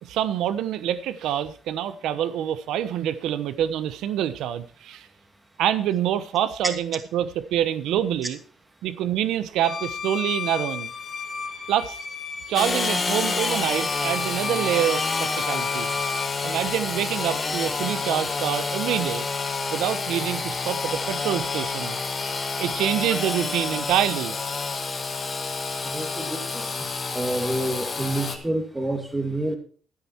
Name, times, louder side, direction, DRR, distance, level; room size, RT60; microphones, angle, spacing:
voice 1, 0.0-5.1 5.6-8.4 8.8-10.9 11.7-12.0 12.5-15.9 16.4-19.3 19.7-22.0 22.6-24.3, right 10 dB, 90° right, 13 dB, 1.0 m, -26 dB
Bowed string instrument, 9.6-16.4, left 5 dB, 50° left, 2.3 m, -33 dB
Engine / Sawing, 12.5-28.4, left 4 dB, 35° left, 2.2 m, -28 dB
voice 2, 25.8-26.9 27.1-29.6, right 1 dB, 15° right, 4 dB, 2.6 m, -28 dB
12.0 x 9.9 x 4.5 m, 0.42 s
cardioid pair, 110°, 0 cm